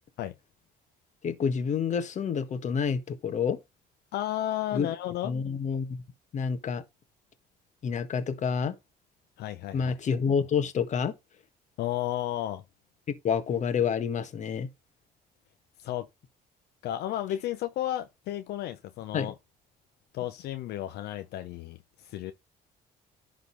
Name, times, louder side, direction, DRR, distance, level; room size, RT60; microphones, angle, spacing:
voice 1, 1.2-3.6 4.7-4.9 5.2-6.0 6.3-6.8 7.8-8.7 9.7-11.1 13.1-14.7 19.1-19.3, left 6 dB, 45° left, 1.6 m, -28 dB
voice 2, 4.1-5.3 9.4-10.0 11.8-12.6 15.8-16.1 16.8-19.3 20.1-22.3, left 12 dB, 75° left, 0.8 m, -33 dB
11.0 x 4.0 x 5.3 m
cardioid pair, 110°, 17 cm